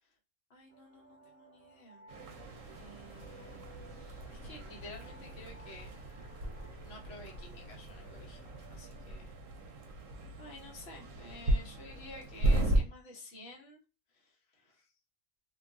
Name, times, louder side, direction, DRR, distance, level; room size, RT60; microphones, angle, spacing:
voice 1, 0.5-2.0 2.8-5.9 6.8-8.4 8.7-9.3 9.8-10.0 10.4-13.8 14.1-14.9, left 2 dB, 55° left, 0 dB, 1.1 m, -51 dB
sound 1, 0.7-10.1, right 2 dB, 50° right, 1.0 m, -60 dB
sound 2, 2.1-12.8, right 1 dB, 85° right, 1.0 m, -36 dB
sound 3, 2.3-8.8, left 1 dB, 80° left, 1.2 m, -55 dB
2.7 x 2.3 x 2.5 m, 0.29 s
omnidirectional pair, 1.3 m